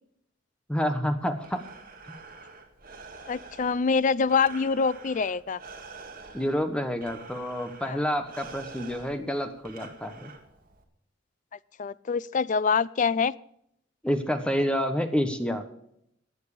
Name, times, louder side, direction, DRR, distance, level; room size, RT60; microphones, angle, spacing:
voice 1, 0.7-1.6 2.1-2.2 6.3-10.3 14.0-15.6, equal, 5° left, 8 dB, 1.2 m, -28 dB
Breathing, 1.2-10.8, right 4 dB, 45° right, 2.1 m, -47 dB
voice 2, 3.3-5.6 7.8-8.0 11.8-13.3, left 5 dB, 40° left, 20 dB, 0.4 m, -25 dB
15.5 x 9.4 x 5.0 m, 0.74 s
head